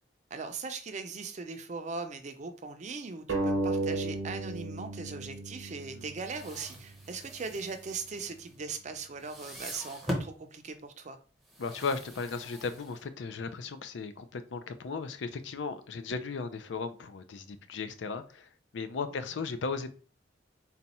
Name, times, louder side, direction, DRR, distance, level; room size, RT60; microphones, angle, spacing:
voice 1, 0.3-11.2 19.1-19.2, right 4 dB, 40° right, 0.5 m, -39 dB
sound 1, 3.3-6.5, right 2 dB, 80° right, 0.9 m, -33 dB
sound 2, 6.1-8.9 9.2-10.4 11.4-13.3, equal, ahead, 0.7 m, -42 dB
voice 2, 11.6-19.9, left 4 dB, 75° left, 0.4 m, -36 dB
4.0 x 2.3 x 4.1 m
head